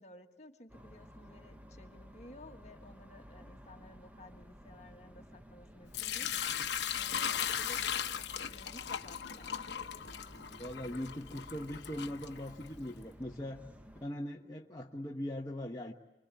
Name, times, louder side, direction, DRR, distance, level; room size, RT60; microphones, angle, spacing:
voice 1, 0.0-6.3 6.9-10.2, left 1 dB, 40° left, 4 dB, 1.6 m, -55 dB
sound 1, 0.7-14.1, equal, 10° right, 1.0 m, -54 dB
Sink (filling or washing) / Liquid, 5.9-12.9, left 9 dB, 75° left, 0.9 m, -37 dB
voice 2, 10.6-13.6 14.0-15.9, left 1 dB, 20° left, -1 dB, 1.0 m, -40 dB
25.0 x 24.5 x 8.3 m, 1.1 s
head